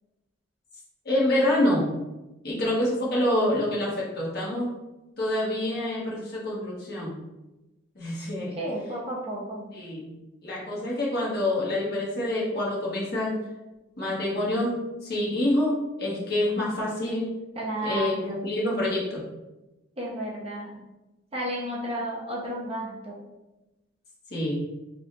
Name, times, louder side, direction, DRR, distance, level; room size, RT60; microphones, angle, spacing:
voice 1, 1.0-1.9 2.4-4.7 5.2-7.2 7.9-8.6 9.7-10.1 10.4-13.4 14.0-17.3 17.8-19.2 24.3-24.6, left 1 dB, 50° left, -6 dB, 1.2 m, -27 dB
voice 2, 8.6-9.7 17.6-18.5 20.0-20.8 21.3-23.2, equal, 30° right, -4 dB, 0.9 m, -32 dB
3.4 x 2.4 x 4.0 m, 1.0 s
head